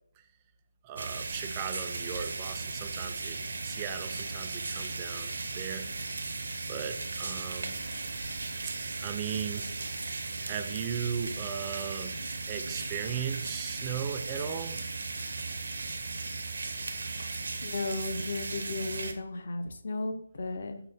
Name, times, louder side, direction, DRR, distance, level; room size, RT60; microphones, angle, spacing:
voice 1, 0.8-3.4 3.6-5.9 6.7-7.8 8.7-8.8 9.0-9.7 10.4-12.1 12.5-14.8, right 8 dB, 20° right, 7 dB, 0.3 m, -37 dB
sound 1, 1.0-19.1, right 3 dB, 70° right, 0.5 m, -36 dB
voice 2, 17.6-20.8, left 2 dB, 55° left, 8 dB, 0.5 m, -35 dB
5.6 x 2.0 x 3.3 m, 0.68 s
figure-of-eight pair, 160°, 0 cm